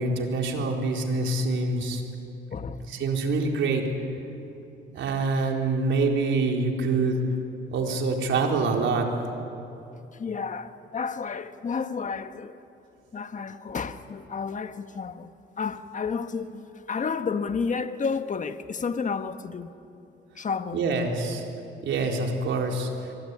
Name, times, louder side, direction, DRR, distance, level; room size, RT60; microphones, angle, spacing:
voice 1, 0.0-2.0 2.9-3.8 4.9-7.2 7.7-9.1 20.7-21.4 21.8-23.1, right 3 dB, 70° right, 4.4 m, -25 dB
voice 2, 2.5-2.8 10.1-12.6 13.1-19.7 20.3-20.8, left 5 dB, 40° left, 1.5 m, -31 dB
25.0 x 23.0 x 9.9 m
cardioid pair, 90°, 20 cm